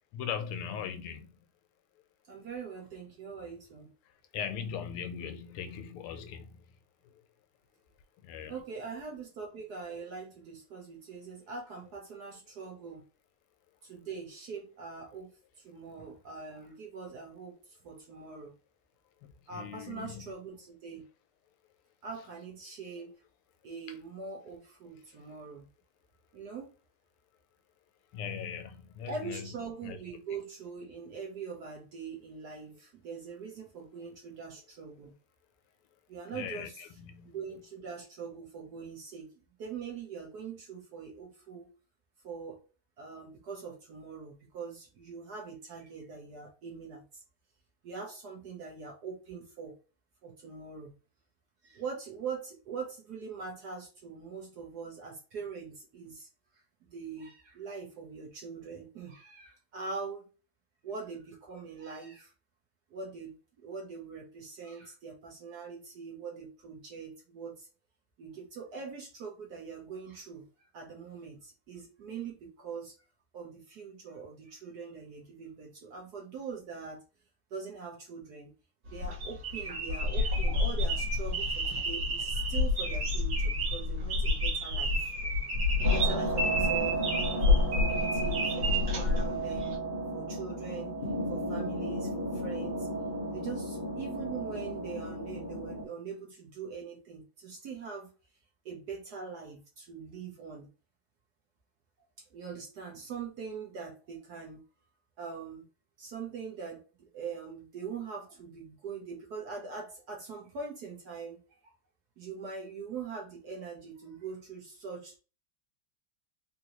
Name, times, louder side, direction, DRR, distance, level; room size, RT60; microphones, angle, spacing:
voice 1, 0.1-1.5 4.3-6.6 7.0-7.2 8.2-8.6 19.2-20.3 23.9-24.0 25.1-25.4 28.1-29.5 29.8-30.0 36.3-37.3, left 7 dB, 85° left, 1.5 m, -40 dB
voice 2, 2.3-3.9 8.5-13.0 13.8-15.3 15.6-18.5 19.5-21.0 22.0-23.2 23.6-25.7 26.3-26.7 29.1-35.1 36.1-36.8 37.2-41.7 42.2-42.6 43.0-47.2 47.8-49.7 50.2-50.9 51.6-56.3 56.5-60.2 60.8-62.3 62.9-67.7 68.2-70.4 70.7-72.9 73.3-77.0 77.5-78.5 78.9-85.1 85.8-87.0 87.5-89.8 90.1-91.0 91.3-92.9 93.3-98.1 98.6-100.7 102.3-104.6 105.2-105.6 106.0-111.7 112.2-115.2, right 5 dB, 65° right, 1.0 m, -42 dB
cajita colibri, 78.9-89.8, left 2 dB, 50° right, 1.8 m, -29 dB
sound 1, 85.8-95.8, right 1 dB, 30° left, 0.9 m, -34 dB
3.8 x 2.6 x 2.9 m
omnidirectional pair, 2.4 m